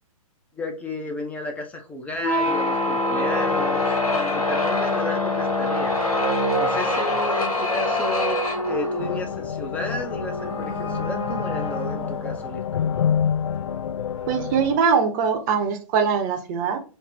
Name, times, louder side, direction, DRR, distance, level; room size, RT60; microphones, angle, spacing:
voice 1, 0.5-6.0 6.6-12.8, left 2 dB, 5° left, 4 dB, 0.5 m, -33 dB
sound 1, 2.1-12.5, left 1 dB, 85° left, 1.1 m, -25 dB
sound 2, 9.0-14.8, left 8 dB, 55° left, 0.4 m, -28 dB
voice 2, 14.3-16.8, right 6 dB, 30° right, 6 dB, 0.7 m, -22 dB
3.5 x 2.1 x 4.0 m, 0.35 s
figure-of-eight pair, 120°, 18 cm